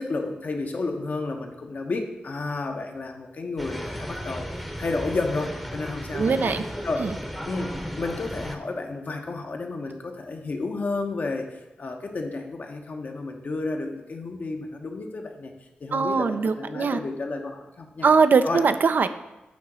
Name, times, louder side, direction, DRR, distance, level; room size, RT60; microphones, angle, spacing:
voice 1, 0.0-4.5 4.8-6.6 6.8-7.1 7.4-11.5 11.8-15.5 15.8-18.1 18.4-18.6, left 3 dB, 55° left, 3 dB, 1.0 m, -31 dB
sound 1, 3.6-8.6, equal, ahead, 0.8 m, -34 dB
voice 2, 6.1-6.6 7.0-7.2 15.9-17.0 18.0-19.1, right 5 dB, 65° right, 10 dB, 0.4 m, -21 dB
8.3 x 2.9 x 6.1 m, 1.0 s
cardioid pair, 70°, 3 cm